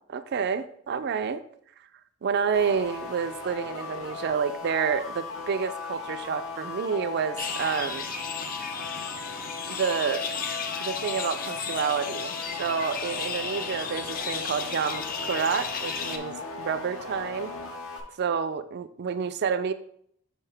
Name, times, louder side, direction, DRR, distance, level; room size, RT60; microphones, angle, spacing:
voice 1, 0.1-1.4 2.2-8.1 9.7-10.3 10.8-17.5 18.2-19.7, right 6 dB, 50° right, 12 dB, 0.4 m, -29 dB
sound 1, 2.5-18.0, left 3 dB, 70° left, 0.9 m, -38 dB
sound 2, 7.4-16.2, left 6 dB, 40° left, 0.5 m, -34 dB
5.5 x 5.0 x 3.4 m, 0.68 s
head